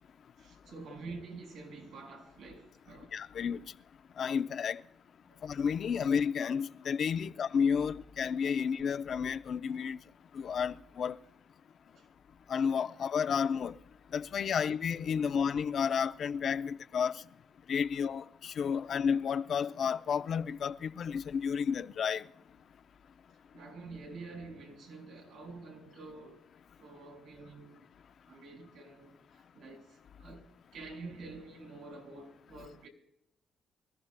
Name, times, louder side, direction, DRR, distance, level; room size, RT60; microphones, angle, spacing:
voice 1, 0.4-3.1 5.3-5.4 7.2-7.3 11.9-12.1 15.2-15.3 23.5-26.4 26.8-27.8 28.3-32.9, right 3 dB, 90° right, 5.0 m, -48 dB
voice 2, 3.1-3.6 4.2-4.8 5.4-10.0 10.3-11.2 12.5-13.8 14.1-17.2 17.7-22.3, left 7 dB, 60° left, 0.6 m, -31 dB
25.5 x 14.5 x 2.2 m
cardioid pair, 90°, 0 cm